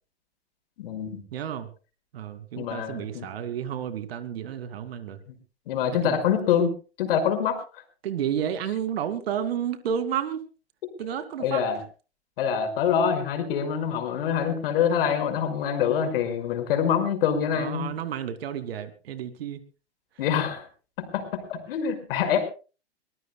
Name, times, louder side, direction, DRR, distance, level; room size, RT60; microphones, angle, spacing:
voice 1, 0.8-1.2 2.6-3.3 5.7-7.6 11.4-11.8 12.4-17.9 20.2-20.6 21.0-22.4, left 8 dB, 55° left, 7 dB, 5.4 m, -25 dB
voice 2, 1.3-1.7 2.1-5.2 6.0-6.3 8.0-10.4 11.0-11.6 17.5-19.6, right 9 dB, 60° right, 11 dB, 2.4 m, -31 dB
23.5 x 20.0 x 2.3 m, 0.35 s
hypercardioid pair, 110°, 33 cm